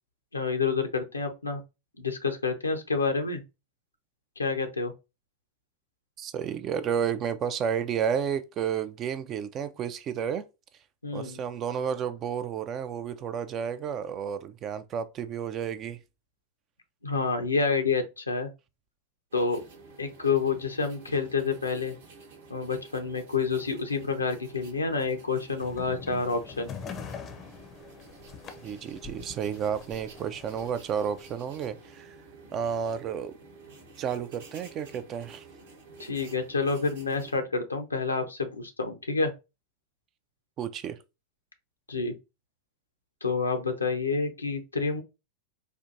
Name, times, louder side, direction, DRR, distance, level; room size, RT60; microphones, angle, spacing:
voice 1, 0.3-1.6 2.0-3.4 4.4-4.9 11.0-11.4 17.0-18.5 19.3-19.6 20.0-22.0 22.5-26.7 36.0-39.3 41.9-42.1 43.2-45.0, left 4 dB, 80° left, 0.6 m, -28 dB
voice 2, 6.2-10.4 11.1-16.0 28.6-32.2 32.5-33.3 34.0-35.5 40.6-41.0, right 8 dB, 30° right, 0.3 m, -31 dB
sound 1, 19.3-37.4, right 3 dB, 60° right, 0.9 m, -51 dB
sound 2, 25.6-31.3, left 6 dB, 30° left, 0.5 m, -44 dB
4.3 x 2.4 x 2.6 m
figure-of-eight pair, 90°, 0 cm